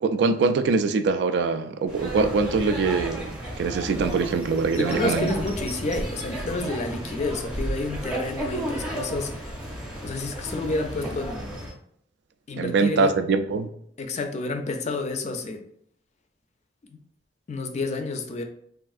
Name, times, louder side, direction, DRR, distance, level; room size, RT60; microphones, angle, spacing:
voice 1, 0.0-5.3 12.6-13.7, right 4 dB, 65° right, 0.3 m, -23 dB
sound 1, 1.9-11.7, right 1 dB, 5° right, 0.7 m, -33 dB
voice 2, 4.8-9.6 10.0-11.6 12.5-13.1 14.0-15.6 17.5-18.4, left 2 dB, 40° left, 0.4 m, -30 dB
3.4 x 2.4 x 2.4 m
head